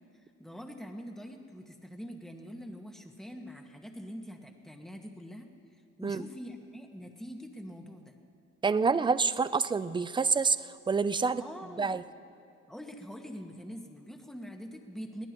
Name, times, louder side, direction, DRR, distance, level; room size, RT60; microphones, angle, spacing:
voice 1, 0.4-5.5 6.0-8.1 11.4-12.0 12.7-15.3, equal, ahead, 2 dB, 1.5 m, -44 dB
voice 2, 8.6-11.4 11.8-12.0, right 4 dB, 15° right, 14 dB, 0.4 m, -27 dB
22.0 x 17.0 x 3.0 m, 2.5 s
cardioid pair, 90°, 30 cm